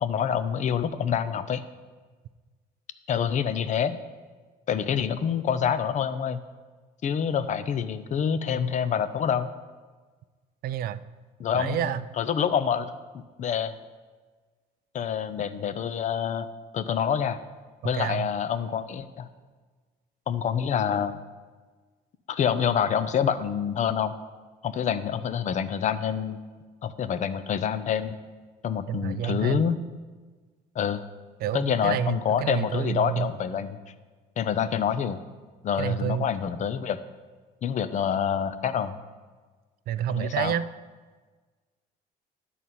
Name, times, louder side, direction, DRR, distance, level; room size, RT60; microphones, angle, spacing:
voice 1, 0.0-1.6 3.1-4.0 4.7-6.4 7.0-9.5 11.4-13.8 14.9-16.5 16.7-17.4 17.8-19.3 20.3-21.2 22.3-24.1 24.6-26.4 26.8-28.2 28.6-29.8 30.8-31.0 31.5-33.8 34.4-35.2 35.6-37.0 37.6-39.0 40.1-40.5, left 8 dB, 45° left, 12 dB, 0.6 m, -27 dB
voice 2, 10.6-11.0 11.5-12.0 17.8-18.3 28.9-29.6 31.4-33.3 35.8-36.3 39.9-40.6, right 10 dB, 65° right, 14 dB, 0.4 m, -29 dB
11.0 x 4.1 x 7.6 m, 1.4 s
cardioid pair, 110°, 17 cm